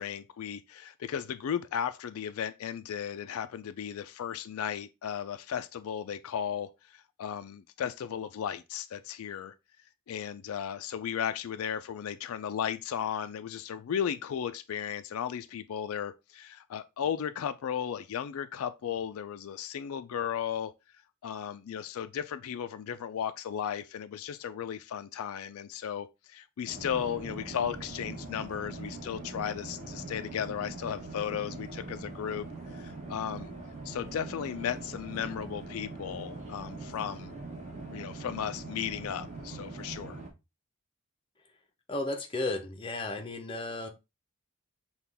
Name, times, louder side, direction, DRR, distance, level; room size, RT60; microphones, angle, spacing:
voice 1, 0.0-9.5 10.1-20.7 21.2-32.5 32.7-33.5 33.8-37.3 37.8-40.2, left 8 dB, 75° left, 0.3 m, -35 dB
sound 1, 26.7-40.3, right 3 dB, 30° right, 1.2 m, -42 dB
voice 2, 41.9-43.9, left 2 dB, 25° left, 0.6 m, -34 dB
5.8 x 2.3 x 3.4 m
head